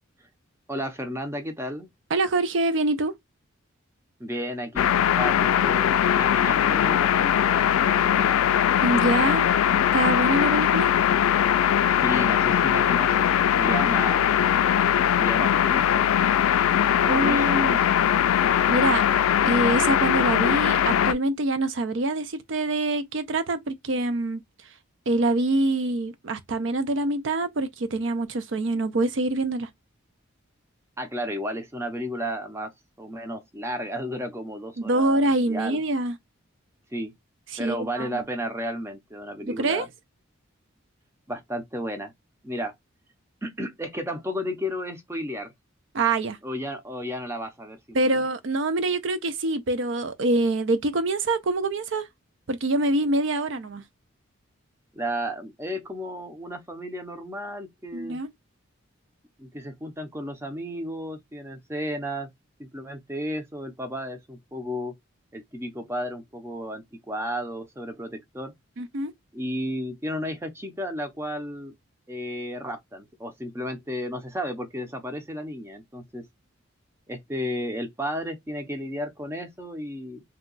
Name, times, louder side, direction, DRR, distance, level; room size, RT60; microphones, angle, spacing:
voice 1, 0.7-1.9 4.2-8.5 12.0-14.3 15.1-16.3 17.0-17.8 31.0-32.7 33.0-35.8 36.9-37.1 37.6-39.9 41.3-42.1 42.4-42.7 43.4-45.5 46.4-48.1 54.9-58.2 59.4-62.3 62.6-64.9 65.3-68.5 69.3-71.7 72.1-76.3 77.1-80.2, equal, 10° right, 0.6 m, -33 dB
voice 2, 2.1-3.1 8.8-9.5 9.9-10.9 13.7-13.8 17.1-17.8 18.7-19.0 19.5-24.4 25.1-29.7 34.8-36.1 37.5-38.1 39.5-39.9 45.9-46.4 47.9-52.1 52.5-53.8 57.9-58.3 68.8-69.1, right 2 dB, 60° right, 0.5 m, -25 dB
sound 1, 4.8-21.1, left 9 dB, 85° left, 0.3 m, -21 dB
2.8 x 2.2 x 3.9 m
head